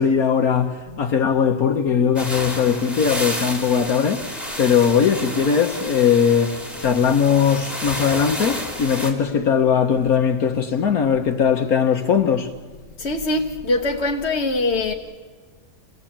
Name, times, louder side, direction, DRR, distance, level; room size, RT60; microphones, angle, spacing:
voice 1, 0.0-4.2 4.6-12.5, left 7 dB, 60° left, 1.4 m, -19 dB
sound 1, 2.2-9.1, equal, ahead, 3.3 m, -30 dB
voice 2, 13.0-14.9, left 2 dB, 45° left, 1.3 m, -23 dB
28.5 x 19.0 x 8.7 m
omnidirectional pair, 1.8 m